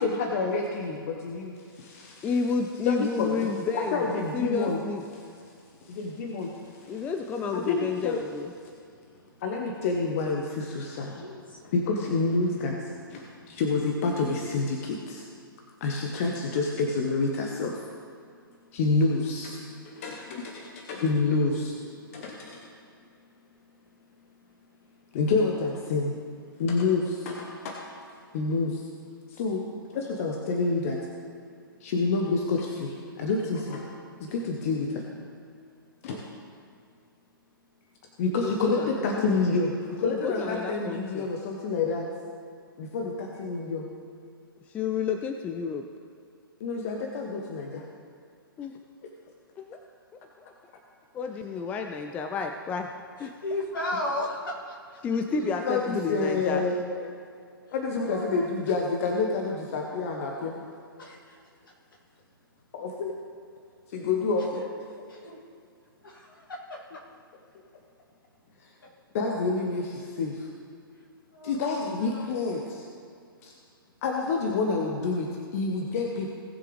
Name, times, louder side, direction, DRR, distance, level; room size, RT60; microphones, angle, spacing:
voice 1, 0.0-2.3 2.8-3.5 3.7-4.8 5.9-6.5 7.5-8.2 9.4-11.2 11.6-15.2 15.8-17.8 18.7-21.7 22.1-22.7 25.1-26.1 26.6-27.9 28.3-28.8 29.3-29.6 29.9-31.0 31.8-33.9 34.2-35.0 36.0-36.3 38.2-42.1 42.8-43.9 46.6-47.8 55.3-57.1 57.7-60.6 62.7-63.1 63.9-64.6 65.2-65.3 69.1-70.5 71.4-72.9 73.4-73.5 74.0-76.3, left 3 dB, 40° left, 1 dB, 1.1 m, -28 dB
voice 2, 2.2-4.0 4.3-5.0 6.9-8.5 38.4-39.5 40.1-41.2 44.7-45.8 48.6-48.8 49.6-49.8 50.4-50.5 51.1-52.9 53.2-53.3 55.0-56.6, left 5 dB, 10° left, 5 dB, 0.4 m, -30 dB
voice 3, 11.1-11.6 53.4-54.7 55.8-56.1 58.0-58.7 61.0-61.4 64.5-64.6 65.1-65.4 66.0-66.8 71.3-72.4, left 1 dB, 65° left, -3 dB, 2.9 m, -35 dB
19.0 x 6.7 x 3.4 m, 2.3 s
figure-of-eight pair, 120°, 12 cm